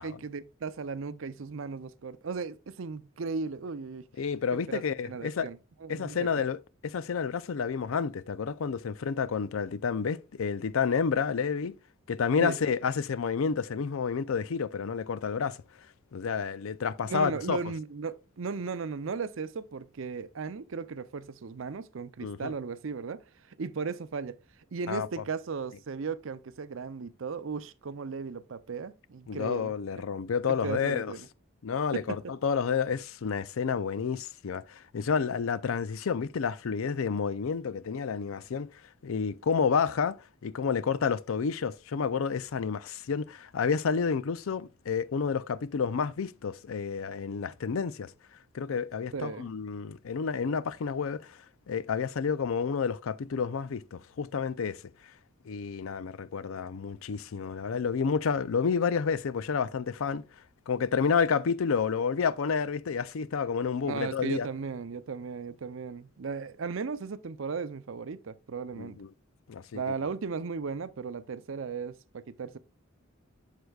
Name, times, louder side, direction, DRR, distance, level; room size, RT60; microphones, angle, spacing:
voice 1, 0.0-4.0 4.7-6.4 12.4-12.6 17.0-23.2 23.5-24.4 24.7-29.7 30.5-31.3 31.9-32.2 49.1-49.5 63.8-69.0 69.7-72.6, right 5 dB, 65° right, 0.5 m, -36 dB
voice 2, 4.2-5.5 5.9-11.7 12.1-15.6 16.1-17.6 22.2-22.5 24.9-25.1 29.3-31.1 31.6-38.7 39.0-40.2 40.4-48.1 48.5-51.4 51.7-54.8 55.5-60.2 60.7-64.5 68.8-69.1 69.5-69.9, left 6 dB, 75° left, 0.5 m, -30 dB
7.9 x 6.7 x 2.3 m
head